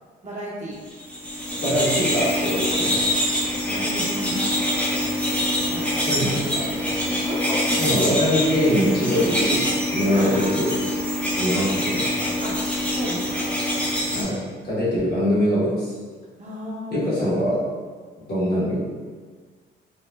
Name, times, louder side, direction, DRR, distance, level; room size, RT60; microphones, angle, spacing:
voice 1, 0.2-0.8 3.6-4.8 5.7-6.6 7.3-7.4 10.1-10.8 12.4-12.6 12.9-13.5 16.4-17.0, right 1 dB, 35° right, -5 dB, 0.7 m, -34 dB
sound 1, 1.0-14.2, left 1 dB, 5° left, 0.5 m, -24 dB
voice 2, 1.6-3.0 6.1-6.6 7.8-10.7 11.4-12.1 14.1-14.4 14.7-15.9 16.9-17.6 18.2-18.8, equal, 55° left, -8 dB, 1.2 m, -23 dB
2.9 x 2.1 x 2.2 m, 1.5 s
cardioid pair, 90°, 20 cm